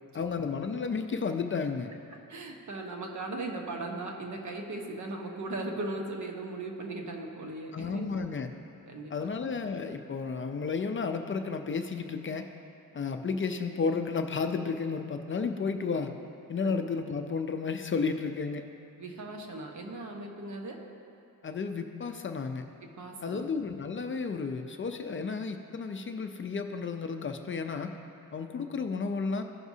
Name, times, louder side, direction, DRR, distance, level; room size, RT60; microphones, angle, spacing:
voice 1, 0.1-1.9 7.7-8.5 9.1-12.5 12.9-16.1 16.5-18.6 21.4-22.6 23.2-27.9 28.3-29.4, left 5 dB, 35° left, 6 dB, 0.5 m, -32 dB
voice 2, 2.3-8.1 8.9-9.3 16.6-16.7 19.0-20.8 23.0-23.4, right 2 dB, 55° right, 1 dB, 1.2 m, -38 dB
15.5 x 5.8 x 2.7 m, 2.6 s
cardioid pair, 95°, 35 cm